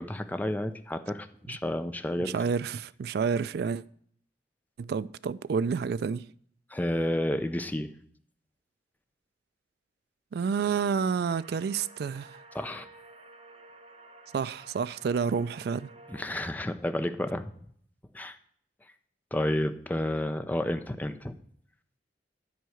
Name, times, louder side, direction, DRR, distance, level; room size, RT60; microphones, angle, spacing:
voice 1, 0.0-2.3 6.7-7.9 12.5-12.8 16.1-17.5 18.1-18.4 19.3-21.4, left 1 dB, 10° left, 0.5 m, -31 dB
voice 2, 2.1-3.8 4.8-6.2 10.3-12.4 14.3-15.9, right 6 dB, 60° right, 0.3 m, -29 dB
sound 1, 10.9-16.3, right 2 dB, 35° right, 1.1 m, -52 dB
9.4 x 4.7 x 6.3 m
head